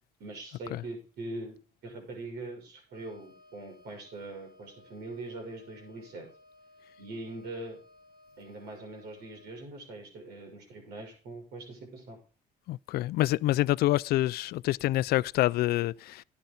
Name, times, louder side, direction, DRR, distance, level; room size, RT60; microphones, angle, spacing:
voice 1, 0.2-1.6 1.8-6.3 7.0-7.8 8.4-12.2, right 2 dB, 75° right, 6.2 m, -42 dB
Wind instrument woodwind instrument, 2.9-9.6, left 2 dB, 35° right, 4.6 m, -59 dB
voice 2, 12.7-16.2, left 16 dB, 65° left, 0.4 m, -27 dB
11.5 x 9.7 x 3.9 m
cardioid pair, 110°, 17 cm